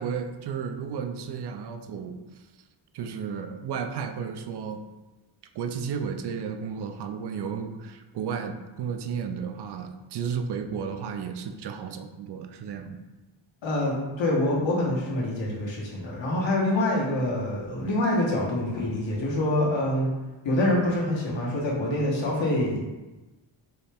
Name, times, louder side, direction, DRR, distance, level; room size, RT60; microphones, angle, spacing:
voice 1, 0.0-2.2 2.9-4.8 5.5-13.0, right 6 dB, 55° right, 6 dB, 0.5 m, -33 dB
voice 2, 13.6-20.1 20.4-22.8, left 1 dB, 65° left, -3 dB, 1.3 m, -26 dB
4.5 x 3.3 x 3.4 m, 1.1 s
wide cardioid pair, 155°, 48 cm